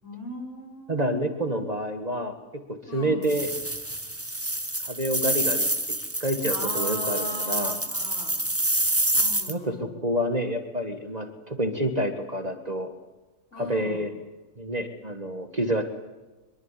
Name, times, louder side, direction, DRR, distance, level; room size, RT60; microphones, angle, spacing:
voice 1, 0.0-1.6 2.9-3.3 6.5-8.4 9.1-10.0 13.5-14.1, left 1 dB, 55° left, 0 dB, 6.7 m, -38 dB
voice 2, 0.9-3.5 4.8-7.8 9.5-12.9 13.6-14.1 14.6-15.8, equal, 30° right, 6 dB, 1.8 m, -28 dB
sound 1, 3.2-9.5, right 1 dB, 10° right, 1.6 m, -27 dB
24.0 x 22.5 x 8.5 m, 1.1 s
omnidirectional pair, 1.5 m